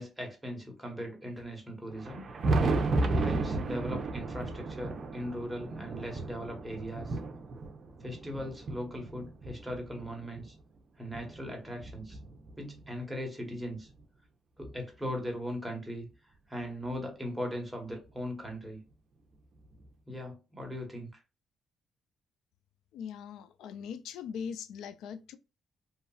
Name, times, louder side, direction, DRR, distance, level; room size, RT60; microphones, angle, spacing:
voice 1, 0.0-2.2 3.1-7.2 8.0-10.5 11.0-12.2 12.6-13.9 14.6-16.1 16.5-18.8 20.1-21.2, equal, 5° right, 1.2 m, -39 dB
Thunder, 1.9-10.5 11.1-12.8 14.0-14.1 14.6-14.7 16.6-16.7 18.1-18.2 19.7-19.8, right 3 dB, 50° right, 0.5 m, -33 dB
voice 2, 22.9-25.4, left 7 dB, 85° left, 0.3 m, -41 dB
2.8 x 2.3 x 2.3 m
cardioid pair, 90°, 0 cm